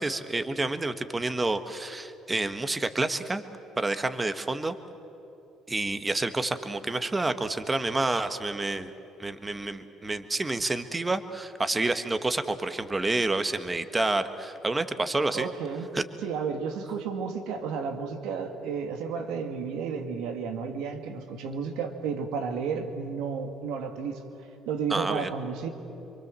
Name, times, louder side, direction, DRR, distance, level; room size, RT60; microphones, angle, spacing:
voice 1, 0.0-3.4 3.8-4.7 5.7-8.9 9.2-15.5 15.9-16.0 24.9-25.3, right 2 dB, 20° right, 10 dB, 1.6 m, -29 dB
voice 2, 15.3-15.9 16.2-24.2 24.7-25.7, right 6 dB, 80° right, 6 dB, 2.3 m, -32 dB
27.0 x 24.0 x 7.7 m, 3.0 s
supercardioid pair, 65°, 0 cm